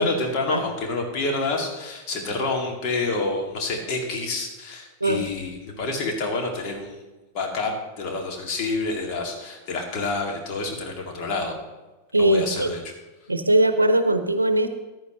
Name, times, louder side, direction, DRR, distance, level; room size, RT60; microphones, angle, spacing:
voice 1, 0.0-7.0 7.3-11.6 12.2-12.9, left 3 dB, 40° left, 2 dB, 2.4 m, -28 dB
voice 2, 12.1-12.7 13.3-14.7, right 1 dB, 80° right, 10 dB, 0.7 m, -20 dB
14.5 x 10.5 x 3.1 m, 1.1 s
figure-of-eight pair, 90°, 0 cm